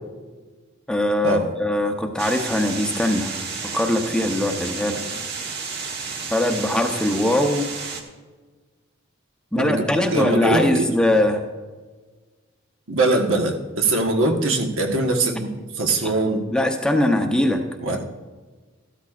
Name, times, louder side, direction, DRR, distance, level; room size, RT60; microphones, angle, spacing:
voice 1, 0.9-3.3 3.7-5.0 6.3-7.7 9.5-11.4 16.5-17.6, left 1 dB, 5° left, 4 dB, 0.7 m, -21 dB
sound 1, 2.2-8.0, right 5 dB, 55° right, 1.2 m, -31 dB
voice 2, 10.1-10.8 12.9-16.4 17.8-18.1, right 2 dB, 70° right, 3 dB, 1.3 m, -22 dB
14.0 x 12.5 x 2.5 m, 1.4 s
head